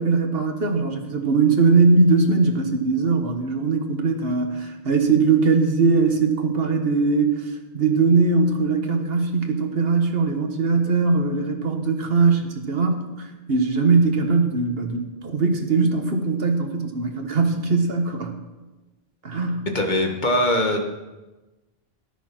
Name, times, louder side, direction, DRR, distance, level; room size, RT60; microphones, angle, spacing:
voice 1, 0.0-18.3 19.2-19.7, right 4 dB, 70° right, 4 dB, 1.7 m, -20 dB
voice 2, 19.7-20.8, left 1 dB, 50° left, 4 dB, 1.8 m, -21 dB
13.5 x 10.5 x 6.1 m, 1.1 s
omnidirectional pair, 1.0 m